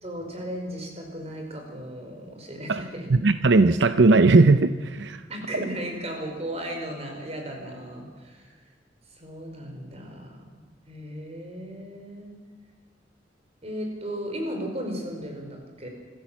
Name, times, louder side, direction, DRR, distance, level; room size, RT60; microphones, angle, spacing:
voice 1, 0.0-3.1 5.3-8.5 9.2-10.6 10.9-12.3 13.6-15.9, equal, 35° right, 2 dB, 4.8 m, -35 dB
voice 2, 3.1-5.2, right 3 dB, 75° right, 11 dB, 0.7 m, -18 dB
26.0 x 14.5 x 7.4 m, 1.5 s
head